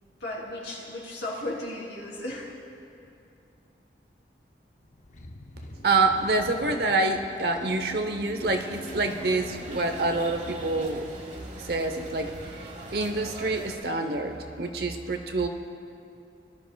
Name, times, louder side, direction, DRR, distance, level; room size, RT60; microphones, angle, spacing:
voice 1, 0.2-2.5, left 1 dB, 80° left, -5 dB, 3.3 m, -35 dB
sound 1, 4.8-11.1, left 2 dB, 45° left, 0.6 m, -44 dB
voice 2, 5.8-11.0 11.6-15.5, right 3 dB, 60° right, 6 dB, 0.8 m, -27 dB
sound 2, 8.4-13.8, right 1 dB, 40° right, 1.2 m, -42 dB
19.5 x 12.5 x 2.3 m, 2.6 s
head